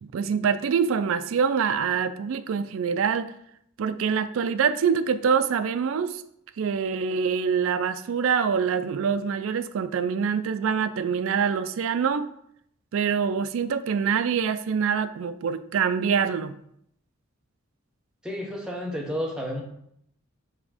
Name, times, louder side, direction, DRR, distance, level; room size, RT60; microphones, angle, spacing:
voice 1, 0.0-3.3 3.8-6.2 6.6-12.3 12.9-16.5, right 6 dB, 70° right, 11 dB, 0.3 m, -25 dB
voice 2, 18.2-19.6, equal, 5° right, 0 dB, 0.8 m, -31 dB
5.5 x 3.5 x 4.9 m, 0.72 s
head